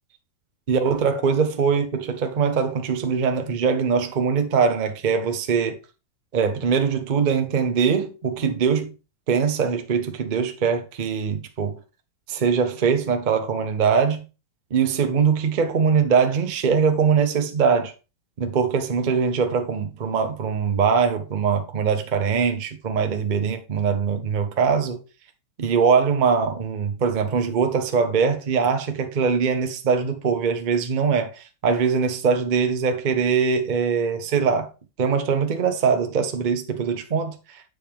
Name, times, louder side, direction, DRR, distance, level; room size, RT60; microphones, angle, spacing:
voice 1, 0.7-5.8 6.3-8.9 9.3-11.8 12.3-14.2 14.7-17.9 18.4-25.0 25.6-34.7 35.0-37.6, right 6 dB, 40° right, 0.7 m, -22 dB
7.6 x 5.0 x 3.5 m
omnidirectional pair, 1.9 m